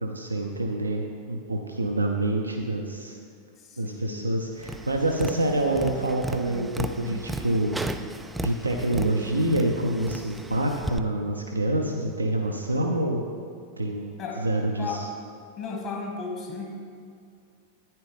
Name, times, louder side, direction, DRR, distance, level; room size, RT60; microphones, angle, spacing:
voice 1, 0.0-3.2 3.8-7.7 8.4-13.2 13.8-14.1 14.4-15.1, right 1 dB, 80° right, 1 dB, 0.6 m, -27 dB
voice 2, 3.6-4.2 14.2-14.4 14.8-15.1 15.6-16.8, left 4 dB, 35° left, 0 dB, 1.8 m, -35 dB
Tap, 4.6-11.0, right 1 dB, 5° right, 0.4 m, -35 dB
10.5 x 9.6 x 3.4 m, 2.3 s
figure-of-eight pair, 90°, 0 cm